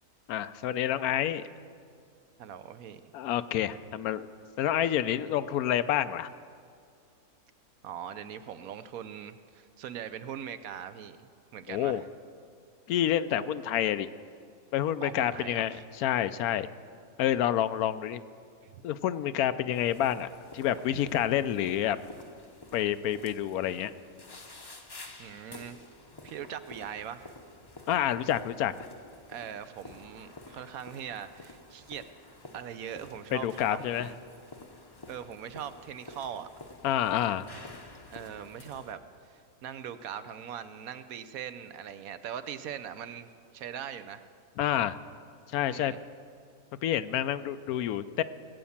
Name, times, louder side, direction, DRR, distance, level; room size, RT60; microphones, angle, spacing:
voice 1, 0.3-1.4 3.1-4.3 4.6-6.3 11.7-12.0 12.9-14.1 14.7-16.7 17.2-18.2 18.8-20.3 20.5-22.0 22.7-23.9 27.9-28.9 33.3-34.1 36.8-37.5 44.6-45.0 45.5-45.9 46.8-48.2, left 11 dB, 80° left, 13 dB, 1.1 m, -28 dB
voice 2, 2.4-3.0 7.8-12.1 15.0-15.8 18.6-18.8 20.9-21.0 25.2-25.8 26.2-27.3 29.3-32.0 32.5-34.2 35.1-36.5 38.1-44.2 45.7-46.0, right 9 dB, 75° right, 12 dB, 1.1 m, -41 dB
sound 1, 19.7-38.9, left 2 dB, 25° left, 0.6 m, -50 dB
19.0 x 8.5 x 7.2 m, 2.2 s
omnidirectional pair, 1.5 m